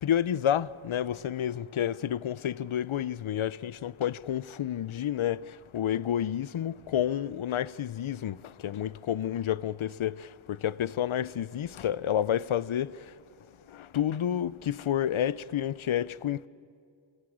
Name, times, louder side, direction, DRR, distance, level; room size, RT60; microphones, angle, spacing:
voice 1, 0.0-5.4 5.7-8.4 8.6-10.2 10.6-12.9 13.9-16.5, left 10 dB, 85° left, 0.6 m, -29 dB
27.5 x 21.5 x 8.6 m
wide cardioid pair, 45°, 47 cm